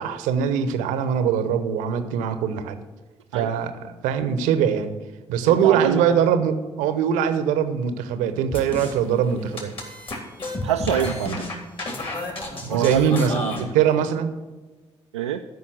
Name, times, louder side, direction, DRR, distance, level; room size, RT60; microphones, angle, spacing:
voice 1, 0.0-2.8 3.3-4.9 5.3-9.7 12.6-14.3, right 8 dB, 65° right, 10 dB, 0.8 m, -22 dB
voice 2, 5.5-6.2 10.6-11.6 12.7-13.7 15.1-15.4, right 9 dB, 80° right, 3 dB, 0.4 m, -26 dB
sound 1, 8.5-8.9 9.4-13.6, left 2 dB, 40° left, 3.0 m, -31 dB
13.0 x 5.7 x 7.6 m, 1.2 s
figure-of-eight pair, 40°, 14 cm